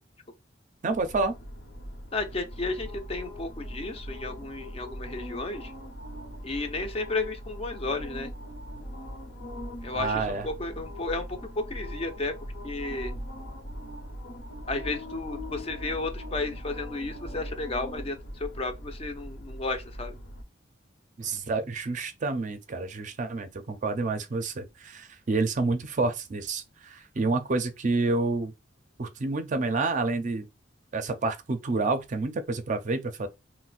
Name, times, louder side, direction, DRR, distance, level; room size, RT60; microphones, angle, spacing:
voice 1, 0.8-1.3 9.9-10.5 21.2-28.5 29.0-30.5 30.9-33.3, right 3 dB, 40° right, 0.5 m, -29 dB
sound 1, 0.9-20.4, equal, 75° left, 1.0 m, -40 dB
voice 2, 2.1-5.7 6.4-8.3 9.8-11.3 11.6-12.4 12.6-13.1 14.7-20.1, left 3 dB, 30° left, 0.5 m, -33 dB
2.5 x 2.1 x 3.9 m
head